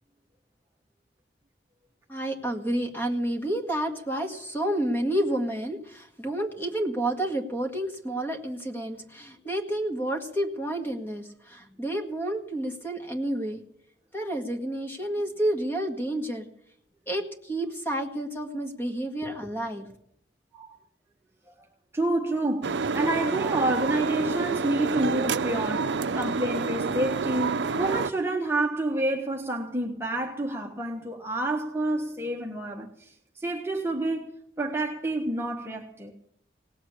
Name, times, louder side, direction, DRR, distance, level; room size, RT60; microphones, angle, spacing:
voice 1, 2.1-13.6 14.1-16.5 17.1-19.9, right 1 dB, 10° left, 1.8 m, -30 dB
voice 2, 21.9-34.3 34.6-36.1, right 1 dB, 15° right, 1.2 m, -29 dB
sound 1, 22.6-28.1, right 4 dB, 90° right, 0.6 m, -28 dB
18.5 x 7.9 x 8.7 m
head